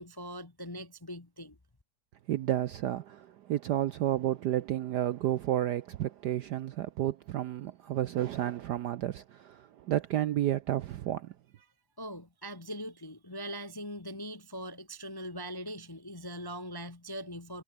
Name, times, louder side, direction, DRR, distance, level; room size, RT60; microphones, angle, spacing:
voice 1, 0.0-1.6 12.0-17.6, equal, 20° left, 0.6 m, -41 dB
voice 2, 2.3-11.3, right 12 dB, 70° right, 1.0 m, -31 dB
omnidirectional pair, 2.4 m